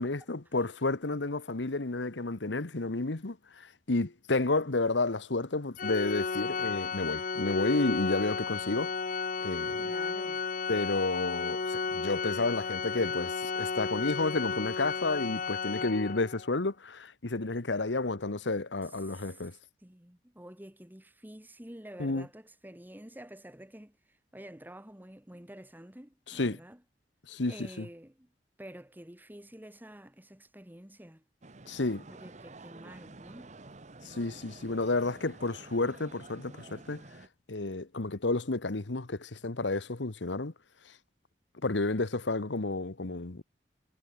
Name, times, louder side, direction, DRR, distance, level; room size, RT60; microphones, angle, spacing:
voice 1, 0.0-8.9 9.4-9.8 10.7-19.5 22.0-22.3 26.3-26.6 27.3-27.9 31.7-32.1 34.0-37.0 37.5-40.5 41.6-43.4, left 2 dB, 85° left, 1.3 m, -31 dB
Organ, 5.8-16.5, left 5 dB, 50° left, 0.9 m, -33 dB
voice 2, 9.8-10.4 19.1-19.5 19.8-26.8 27.5-28.3 28.6-31.2 32.1-33.5, right 1 dB, 10° right, 1.9 m, -49 dB
sound 1, 31.4-37.3, right 3 dB, 40° right, 1.2 m, -50 dB
head